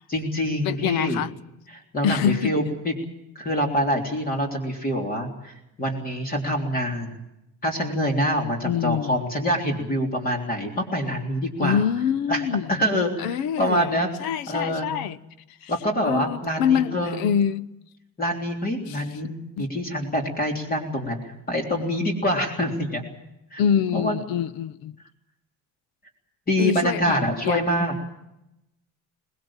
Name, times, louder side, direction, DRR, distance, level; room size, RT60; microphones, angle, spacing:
voice 1, 0.1-1.2 1.7-3.0 3.4-7.2 7.6-11.8 12.3-12.4 12.7-14.1 14.5-14.9 15.7-17.2 18.2-23.0 23.5-23.6 23.9-24.1 26.5-27.9, equal, 25° left, 3.6 m, -25 dB
voice 2, 0.6-1.3 2.0-2.5 8.6-9.2 11.6-12.7 13.2-13.9 14.2-15.2 15.6-15.7 16.0-17.7 18.9-19.0 19.6-19.7 23.6-24.9 26.6-27.6, left 8 dB, 80° left, 1.0 m, -25 dB
23.0 x 21.0 x 7.3 m
cardioid pair, 165°, 36 cm